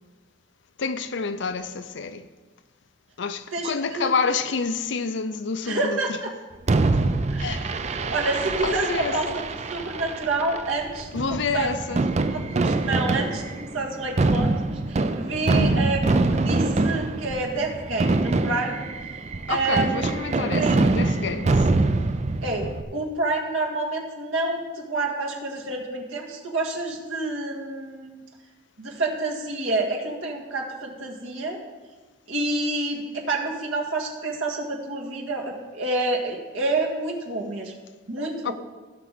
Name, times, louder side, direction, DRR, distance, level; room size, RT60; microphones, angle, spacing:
voice 1, 0.8-2.3 3.2-6.0 7.4-7.7 8.6-9.3 11.1-12.1 15.5-15.8 19.5-21.7 38.4-38.5, left 5 dB, 60° left, 0.5 m, -28 dB
voice 2, 3.5-4.1 5.7-6.3 7.3-9.4 9.7-11.7 12.5-16.0 16.3-18.9 19.5-20.0 20.5-20.8 22.4-28.2 28.8-31.6 32.3-37.7 38.1-38.5, right 2 dB, 75° right, 1.9 m, -28 dB
Fireworks, 6.7-22.8, right 2 dB, 35° right, 0.4 m, -24 dB
16.5 x 6.0 x 4.1 m
head